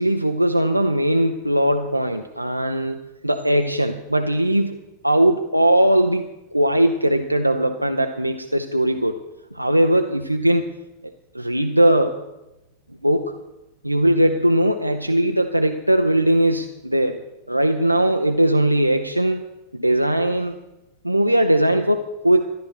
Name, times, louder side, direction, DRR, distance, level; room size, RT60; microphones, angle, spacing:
voice 1, 0.0-3.0 3.2-4.7 5.0-6.2 6.5-9.2 9.5-10.6 11.3-12.2 13.0-13.4 13.8-19.4 19.7-20.6 21.0-22.4, right 1 dB, 85° right, 5 dB, 0.7 m, -19 dB
13.0 x 11.5 x 5.9 m, 0.97 s
figure-of-eight pair, 90°, 0 cm